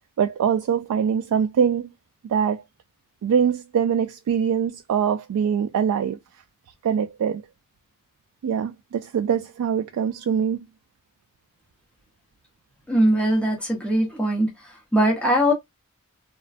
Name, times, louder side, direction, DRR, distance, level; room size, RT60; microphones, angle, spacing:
voice 1, 0.2-1.9 2.3-2.6 3.2-6.2 6.8-7.4 8.4-10.7, right 7 dB, 85° right, 0.3 m, -23 dB
voice 2, 12.9-14.5 14.9-15.5, equal, 5° left, 0.7 m, -20 dB
3.2 x 2.1 x 2.4 m
head